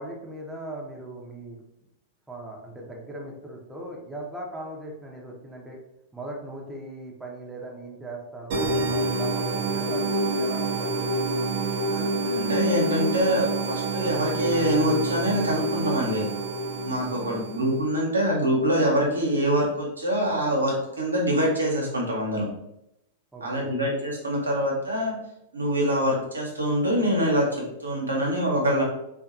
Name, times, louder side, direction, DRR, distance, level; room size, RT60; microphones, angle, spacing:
voice 1, 0.0-1.6 2.3-5.8 6.1-11.0 17.0-17.5 23.3-23.8, right 1 dB, 5° right, -2 dB, 0.6 m, -39 dB
sound 1, 8.5-17.9, right 2 dB, 55° right, 0.5 m, -27 dB
voice 2, 11.8-16.3 16.8-22.5 23.4-25.1 25.5-28.8, equal, 90° right, -2 dB, 0.8 m, -25 dB
2.6 x 2.3 x 2.6 m, 0.85 s
figure-of-eight pair, 100°, 0 cm